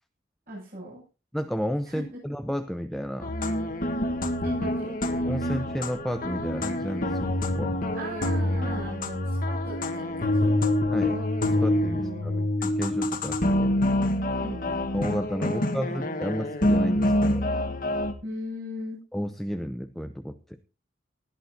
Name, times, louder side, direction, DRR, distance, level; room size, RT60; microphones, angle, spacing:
voice 1, 0.5-1.0 1.9-2.0 4.4-5.0 7.9-10.5 11.9-12.5 14.4-14.9 15.4-16.1 18.2-19.0, equal, 55° right, -7 dB, 7.8 m, -38 dB
voice 2, 1.3-3.3 5.3-7.8 10.9-13.8 14.9-17.5 19.1-20.6, equal, ahead, 8 dB, 0.6 m, -32 dB
sound 1, 3.2-18.1, left 1 dB, 50° left, 1.6 m, -26 dB
19.5 x 11.5 x 2.9 m, 0.31 s
head